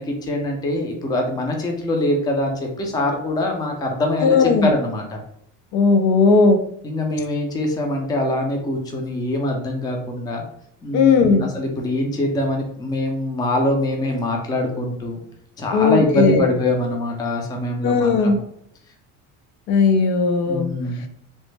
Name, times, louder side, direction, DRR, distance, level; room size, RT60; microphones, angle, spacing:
voice 1, 0.0-5.2 6.8-10.4 10.8-15.2 15.6-18.3 20.5-21.0, left 1 dB, 10° left, 2 dB, 0.3 m, -23 dB
voice 2, 4.2-4.7 5.7-6.6 10.9-11.5 15.7-16.5 17.8-18.4 19.7-20.7, left 4 dB, 90° left, 7 dB, 0.6 m, -16 dB
3.1 x 2.0 x 3.1 m, 0.68 s
cardioid pair, 155°, 35 cm